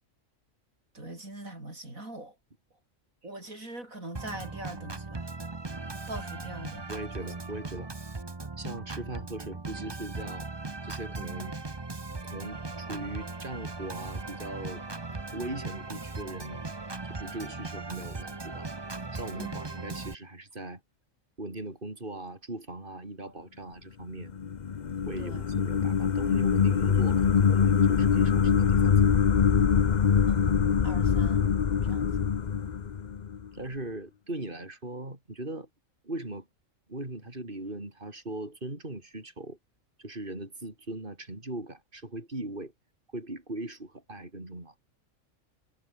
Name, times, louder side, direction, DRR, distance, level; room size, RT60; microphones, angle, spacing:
voice 1, 0.9-2.4 3.2-5.3 6.1-6.9 7.2-7.3 19.3-19.6 25.2-25.5 30.3-31.5 31.8-32.3, right 2 dB, 85° right, 7.7 m, -42 dB
Organ, 4.1-20.1, right 3 dB, 20° right, 1.0 m, -38 dB
voice 2, 6.9-7.9 8.6-10.5 10.8-11.6 12.3-14.8 15.1-16.6 17.0-18.7 19.1-20.8 21.4-24.3 25.1-29.0 33.5-35.7 36.0-36.5 36.9-39.6 40.0-42.7 43.1-44.7, right 2 dB, 40° right, 5.5 m, -39 dB
sound 1, 24.2-33.5, left 7 dB, 40° left, 0.7 m, -24 dB
omnidirectional pair, 1.4 m